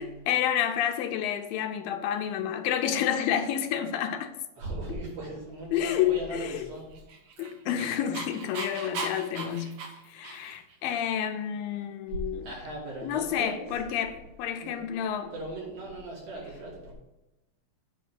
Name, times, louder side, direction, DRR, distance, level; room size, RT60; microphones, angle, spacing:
voice 1, 0.0-4.3 5.7-6.7 7.4-9.7 10.1-12.5 13.0-15.3, left 9 dB, 80° left, 2.4 m, -29 dB
voice 2, 4.6-6.9 12.1-14.2 14.6-14.8 15.3-16.9, right 2 dB, 75° right, 5.5 m, -38 dB
Dog, 6.9-10.7, right 4 dB, 55° right, 2.0 m, -38 dB
9.1 x 5.5 x 7.9 m
omnidirectional pair, 4.2 m